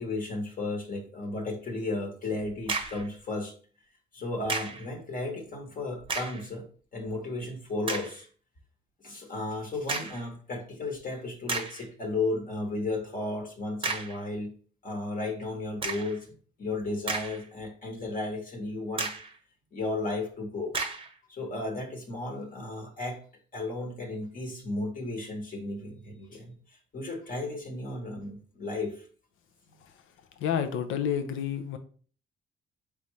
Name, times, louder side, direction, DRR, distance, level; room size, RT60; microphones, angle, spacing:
voice 1, 0.0-3.5 4.1-6.7 6.9-8.3 9.0-14.5 14.8-16.3 16.6-19.1 19.7-20.8 21.3-23.2 23.5-26.6 26.9-29.0, left 2 dB, 45° left, 2 dB, 1.2 m, -34 dB
sound 1, 2.6-3.1 4.5-4.9 6.0-6.5 7.1-7.2 7.9-8.2 9.9-10.3 11.0-11.1 11.5-11.9 13.8-14.2 15.8-16.2 16.8-17.6 18.0-18.1 19.0-19.4 20.7-21.1, right 4 dB, 25° right, 0.8 m, -33 dB
voice 2, 30.4-31.8, left 8 dB, 85° left, 9 dB, 0.7 m, -30 dB
4.1 x 3.6 x 3.2 m, 0.43 s
cardioid pair, 90°, 20 cm